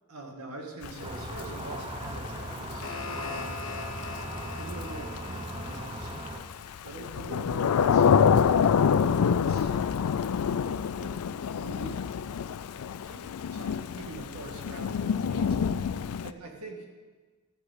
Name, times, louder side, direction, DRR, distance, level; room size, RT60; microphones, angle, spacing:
voice 1, 0.1-3.5 4.5-9.8 10.7-12.2 13.0-15.5 16.2-16.8, right 2 dB, 90° right, 1 dB, 1.8 m, -44 dB
Thunder / Rain, 0.8-16.3, left 7 dB, 90° left, 0.4 m, -27 dB
sound 1, 1.0-6.4, right 1 dB, 25° right, 0.7 m, -38 dB
sound 2, 2.4-7.5, left 4 dB, 60° left, 1.1 m, -42 dB
12.5 x 5.1 x 8.0 m, 1.4 s
head